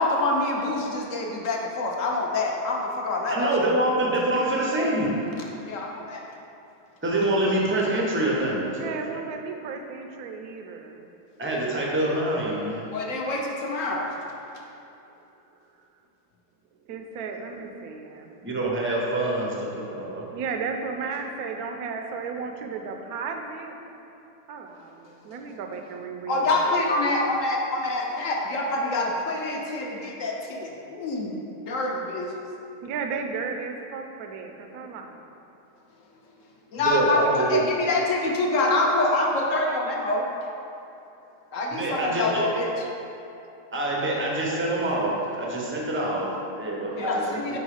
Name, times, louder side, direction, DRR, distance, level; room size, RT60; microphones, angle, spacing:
voice 1, 0.0-3.5 5.6-6.2 12.9-14.1 26.3-32.3 36.7-40.3 41.5-42.7 47.0-47.6, left 2 dB, 60° left, 0 dB, 0.9 m, -26 dB
voice 2, 3.3-5.3 7.0-8.9 11.4-12.8 18.4-20.2 36.8-37.6 41.7-42.5 43.7-47.6, right 1 dB, 15° right, -3 dB, 0.4 m, -26 dB
voice 3, 8.7-11.1 16.9-18.5 20.3-23.8 24.5-27.1 32.3-35.4, right 5 dB, 75° right, 4 dB, 1.0 m, -34 dB
5.4 x 4.8 x 4.8 m, 2.8 s
omnidirectional pair, 1.7 m